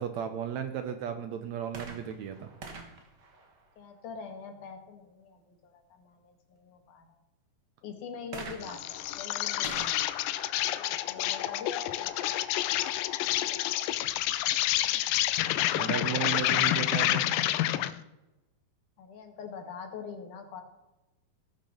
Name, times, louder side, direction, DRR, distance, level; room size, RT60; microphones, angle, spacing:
voice 1, 0.0-2.5 15.7-17.2, right 8 dB, 70° right, 8 dB, 1.9 m, -34 dB
sound 1, 1.7-4.3 8.3-12.0 12.8-12.9, right 4 dB, 45° right, 1.6 m, -47 dB
voice 2, 3.8-7.1 7.8-10.0 10.8-12.3 12.6-13.0 13.5-14.0 14.7-15.1 19.0-20.6, left 6 dB, 70° left, 5 dB, 3.0 m, -44 dB
Insect, 8.6-18.0, left 14 dB, 90° left, 2.3 m, -29 dB
16.5 x 6.6 x 6.5 m, 1.0 s
omnidirectional pair, 3.8 m